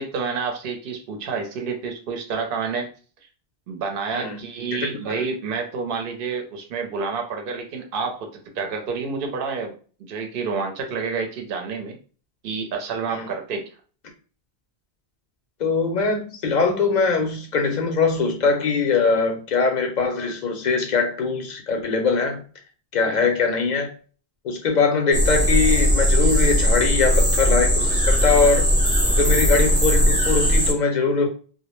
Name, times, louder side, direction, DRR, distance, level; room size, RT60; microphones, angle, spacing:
voice 1, 0.0-2.9 3.7-8.3 8.5-9.8 10.1-12.0 12.4-13.7, right 5 dB, 60° right, 0.7 m, -29 dB
voice 2, 15.6-22.4 22.9-23.9 24.4-28.7 29.2-31.3, left 4 dB, 55° left, 0.6 m, -22 dB
sound 1, 25.1-30.7, equal, 10° right, 0.6 m, -19 dB
2.1 x 2.0 x 3.0 m
omnidirectional pair, 1.1 m